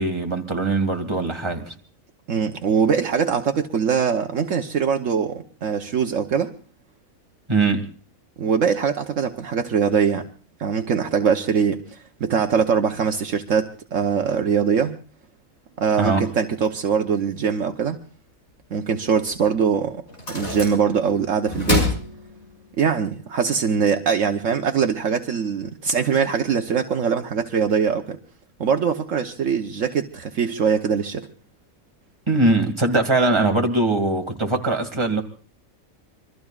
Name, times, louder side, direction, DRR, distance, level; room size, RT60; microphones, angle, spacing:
voice 1, 0.0-1.7 7.5-7.9 16.0-16.2 32.3-35.2, right 2 dB, 20° right, 2.1 m, -21 dB
voice 2, 2.3-6.5 8.4-10.3 10.6-15.0 15.8-18.0 18.7-20.0 20.3-21.9 22.8-28.2 28.6-31.3, right 6 dB, 70° right, 1.3 m, -22 dB
sound 1, 19.3-19.4 20.1-21.1 21.5-22.8, left 3 dB, 55° left, 6.8 m, -26 dB
26.5 x 22.5 x 2.4 m
omnidirectional pair, 1.4 m